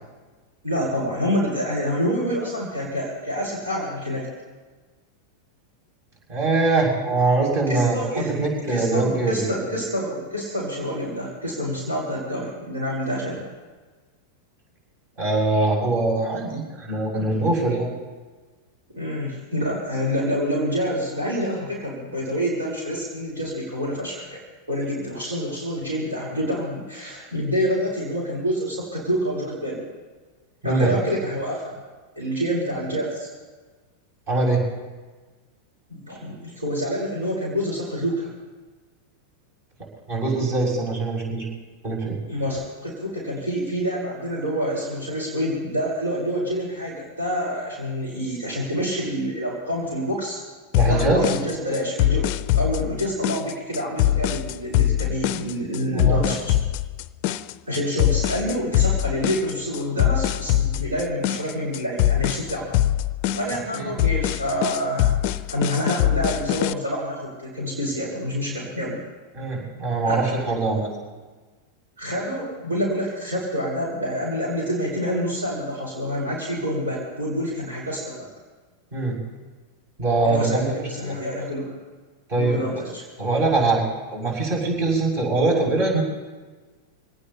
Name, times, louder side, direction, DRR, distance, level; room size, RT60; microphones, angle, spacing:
voice 1, 0.6-4.3 7.7-8.3 8.7-13.4 18.9-24.4 24.7-29.8 30.6-31.8 32.2-33.3 35.9-38.3 42.3-50.4 50.9-52.3 52.5-56.5 57.7-62.7 63.4-65.1 65.5-69.0 70.1-70.3 72.0-78.3 80.2-81.8 82.4-83.0, equal, 75° right, -5 dB, 4.3 m, -27 dB
voice 2, 6.3-9.5 15.2-17.9 30.6-30.9 34.3-34.6 40.1-41.5 41.8-42.2 50.7-51.2 55.9-56.3 63.7-63.9 69.3-70.9 78.9-79.2 80.0-81.1 82.3-82.6 83.2-83.8 84.1-86.0, right 3 dB, 45° right, -2 dB, 6.6 m, -22 dB
sound 1, 50.7-66.7, left 13 dB, 45° left, 0.5 m, -23 dB
26.0 x 18.5 x 2.9 m, 1.3 s
figure-of-eight pair, 90°, 0 cm